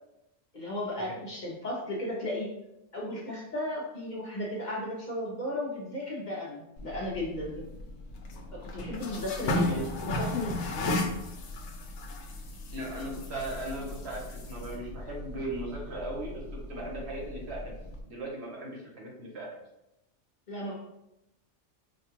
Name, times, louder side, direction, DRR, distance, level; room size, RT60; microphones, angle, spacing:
voice 1, 0.5-2.5 2.9-7.7 8.5-10.9 20.5-20.7, left 1 dB, 45° left, -4 dB, 0.7 m, -35 dB
sound 1, 6.8-18.0, left 1 dB, 75° left, 0.9 m, -36 dB
voice 2, 9.4-9.9 12.7-16.4 16.7-17.7 18.1-19.5, right 1 dB, 65° right, -2 dB, 1.1 m, -38 dB
4.9 x 2.3 x 2.9 m, 0.88 s
omnidirectional pair, 1.2 m